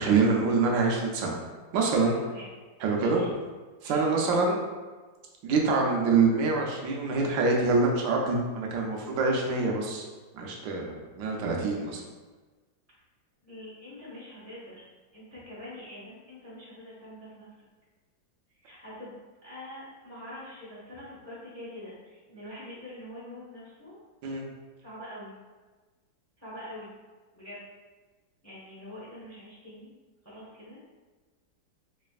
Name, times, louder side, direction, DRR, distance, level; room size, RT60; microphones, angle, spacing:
voice 1, 0.0-1.4 1.7-2.2 2.8-3.2 3.8-4.6 5.4-10.0 10.3-12.0 24.2-24.4, right 4 dB, 80° right, 0 dB, 1.3 m, -25 dB
voice 2, 2.1-2.5 3.0-3.3 3.8-4.1 13.4-14.8 15.1-17.7 18.6-24.0 24.8-25.4 26.4-26.9 27.3-27.7 28.4-29.9 30.2-30.8, left 1 dB, 10° left, -8 dB, 0.8 m, -44 dB
4.1 x 3.2 x 2.4 m, 1.3 s
omnidirectional pair, 2.0 m